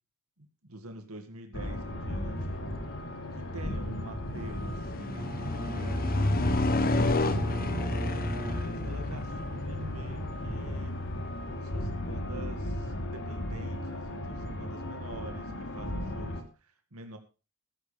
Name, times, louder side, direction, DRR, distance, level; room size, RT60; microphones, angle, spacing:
voice 1, 0.4-2.6 3.3-5.3 5.5-6.4 6.8-10.9 11.2-17.2, right 1 dB, 70° right, 6 dB, 2.1 m, -45 dB
sound 1, 1.5-16.4, left 1 dB, 60° left, 3.2 m, -36 dB
sound 2, 2.4-2.6 3.1-12.9, left 2 dB, 40° left, 1.2 m, -31 dB
Bowed string instrument, 5.1-9.3, right 1 dB, 20° right, 0.9 m, -40 dB
14.5 x 14.5 x 3.4 m, 0.31 s
head